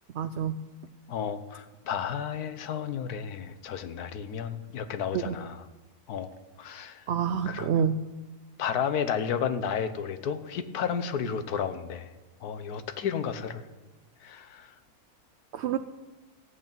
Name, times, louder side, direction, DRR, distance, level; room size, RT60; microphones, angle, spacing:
voice 1, 0.1-0.6 5.1-5.3 7.1-8.0 15.5-15.8, right 8 dB, 65° right, 10 dB, 0.7 m, -27 dB
voice 2, 1.1-5.6 6.1-6.3 6.6-7.1 7.5-7.7 8.6-12.1 12.4-13.6 14.2-14.7, left 7 dB, 85° left, 11 dB, 1.4 m, -32 dB
14.5 x 8.1 x 9.0 m, 1.2 s
omnidirectional pair, 1.6 m